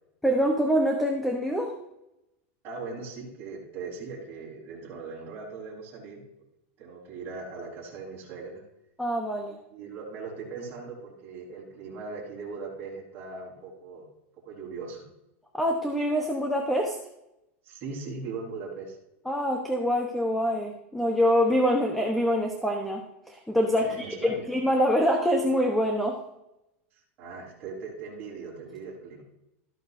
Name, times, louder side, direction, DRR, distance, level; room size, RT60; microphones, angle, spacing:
voice 1, 0.2-1.7 9.0-9.6 15.5-17.0 19.3-26.2, equal, ahead, 2 dB, 1.0 m, -25 dB
voice 2, 2.6-6.2 6.8-8.6 9.4-14.1 14.4-15.1 17.6-19.0 23.8-24.5 27.2-29.2, right 4 dB, 35° right, -6 dB, 4.2 m, -39 dB
14.0 x 9.3 x 2.7 m, 0.86 s
supercardioid pair, 155°, 7 cm